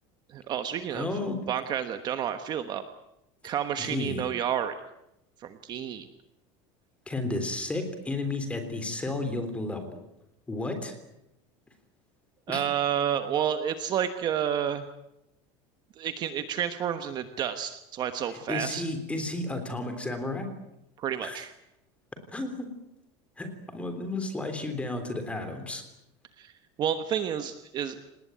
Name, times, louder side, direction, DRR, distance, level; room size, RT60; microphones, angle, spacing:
voice 1, 0.3-1.1 1.5-2.8 3.4-4.8 5.4-6.1 12.5-14.9 16.0-18.8 21.0-21.5 26.4-26.5 26.8-28.0, right 9 dB, 30° right, 9 dB, 1.2 m, -30 dB
voice 2, 0.9-1.4 3.8-4.2 7.1-10.0 10.5-10.9 12.5-12.6 18.5-20.5 21.2-21.4 22.3-22.7 23.4-23.5 23.7-25.8, left 2 dB, 10° left, 7 dB, 3.5 m, -32 dB
29.0 x 19.0 x 9.2 m, 0.86 s
cardioid pair, 170°, 15 cm